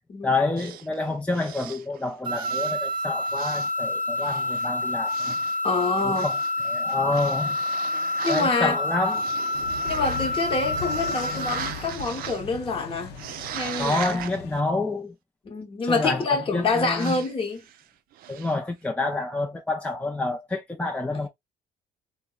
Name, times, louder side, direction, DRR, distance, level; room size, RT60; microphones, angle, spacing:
voice 1, 0.2-5.3 6.0-6.3 6.7-7.6 8.3-9.3 13.8-15.1 15.8-17.2 18.3-21.3, left 2 dB, 10° left, 0.4 m, -28 dB
sound 1, 0.6-2.9 3.2-3.9 4.2-8.5 9.0-10.5 10.9-12.5 13.1-14.4 16.9-17.3 17.6-17.8 18.1-18.6, right 11 dB, 60° right, 0.4 m, -39 dB
sound 2, 2.2-11.8, left 2 dB, 25° right, 0.8 m, -28 dB
voice 2, 5.6-6.3 8.2-8.8 9.8-13.2 13.5-14.2 15.4-17.6 21.1-21.3, left 3 dB, 30° left, 0.9 m, -27 dB
sound 3, 9.5-14.6, left 7 dB, 70° left, 0.6 m, -38 dB
3.4 x 2.0 x 2.3 m
cardioid pair, 110°, 17 cm